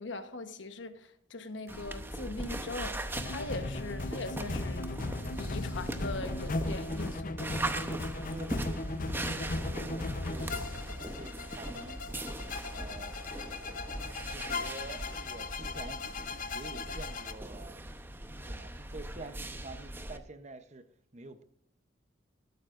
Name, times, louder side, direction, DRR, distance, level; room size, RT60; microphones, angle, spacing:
voice 1, 0.0-4.9 5.4-7.6, left 3 dB, 85° left, 1.1 m, -41 dB
Acoustic guitar, 1.7-8.0 8.4-8.5 8.9-9.0, equal, 15° left, 1.7 m, -61 dB
sound 1, 1.7-20.2, right 1 dB, 10° right, 0.8 m, -40 dB
sound 2, 3.1-17.3, left 2 dB, 50° left, 0.7 m, -37 dB
voice 2, 8.3-12.3 12.7-13.2 13.6-13.8 14.2-21.4, right 2 dB, 40° right, 0.8 m, -48 dB
13.5 x 12.0 x 2.5 m
head